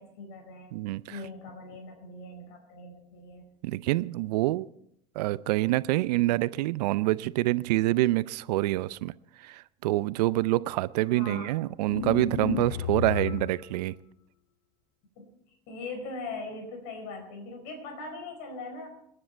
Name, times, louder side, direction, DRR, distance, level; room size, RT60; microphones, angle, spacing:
voice 1, 0.0-0.7 1.1-3.5 11.1-11.5 15.2-15.3 15.7-18.9, left 3 dB, 65° left, 5 dB, 4.7 m, -40 dB
voice 2, 0.7-1.2 3.6-4.7 5.1-9.1 9.4-14.0, right 18 dB, 75° right, 18 dB, 0.6 m, -26 dB
sound 1, 11.8-13.7, left 11 dB, 80° left, 0.6 m, -32 dB
27.5 x 9.9 x 4.5 m, 0.75 s
hypercardioid pair, 80°, 21 cm